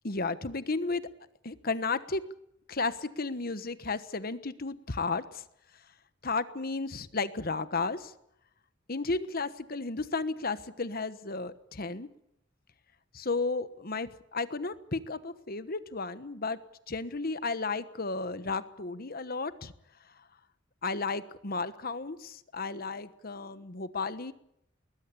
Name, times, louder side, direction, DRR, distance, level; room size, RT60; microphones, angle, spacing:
voice 1, 0.0-1.1 1.4-2.3 2.7-5.4 6.2-8.1 8.9-12.1 13.1-16.6 16.9-19.7 20.8-24.3, left 3 dB, 50° left, 13 dB, 1.2 m, -33 dB
21.5 x 20.5 x 8.4 m, 0.77 s
head